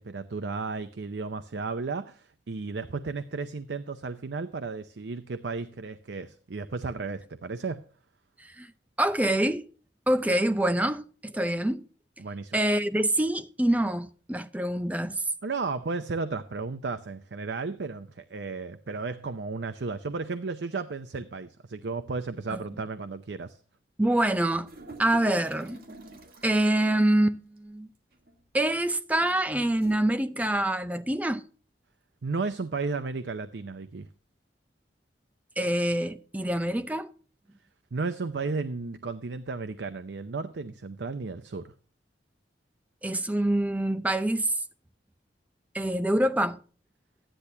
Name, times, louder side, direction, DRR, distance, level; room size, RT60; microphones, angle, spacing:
voice 1, 0.0-7.8 12.2-12.6 15.4-23.6 32.2-34.1 37.9-41.7, right 4 dB, 80° right, 0.6 m, -34 dB
voice 2, 9.0-9.7 10.1-11.8 12.5-15.2 22.5-22.6 24.0-24.7 25.0-25.8 26.4-27.9 28.5-31.4 35.6-37.1 43.0-44.5 45.7-46.6, right 1 dB, 10° right, 0.6 m, -25 dB
sound 1, 24.6-26.8 28.1-28.5 29.7-30.0, right 2 dB, 60° right, 1.7 m, -47 dB
13.5 x 10.0 x 2.8 m
head